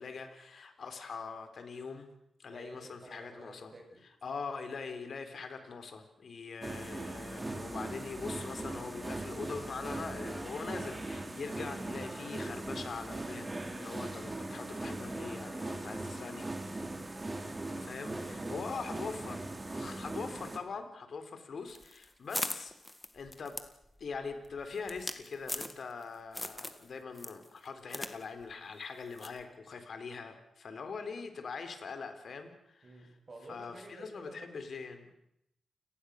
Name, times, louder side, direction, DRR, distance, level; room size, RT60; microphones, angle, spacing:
voice 1, 0.0-2.1 2.4-3.7 4.2-16.8 17.8-19.4 19.7-22.7 23.1-23.6 24.0-33.1 33.5-35.1, left 5 dB, 55° left, 7 dB, 4.1 m, -42 dB
voice 2, 2.5-4.0 18.0-19.1 32.8-34.7, right 2 dB, 35° right, 2 dB, 7.8 m, -51 dB
sound 1, 6.6-20.6, right 2 dB, 20° right, 3.0 m, -40 dB
sound 2, 21.7-26.0 26.3-26.8 27.2-28.1 28.4-28.5 29.2-29.4, left 1 dB, 10° left, 1.9 m, -40 dB
29.5 x 19.0 x 6.7 m, 0.78 s
cardioid pair, 105°, 0 cm